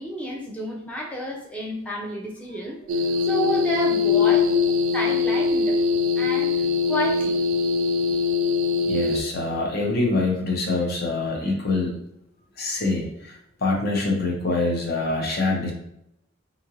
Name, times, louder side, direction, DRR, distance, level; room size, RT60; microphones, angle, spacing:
voice 1, 0.0-2.8 3.2-4.4 4.9-5.8 6.2-7.4, right 1 dB, 5° left, -2 dB, 0.5 m, -30 dB
sound 1, 2.9-9.2, left 4 dB, 90° right, 0.3 m, -23 dB
voice 2, 3.9-5.0 8.9-12.0 12.6-15.7, left 3 dB, 50° left, 0 dB, 0.6 m, -25 dB
2.8 x 2.5 x 2.6 m, 0.79 s
head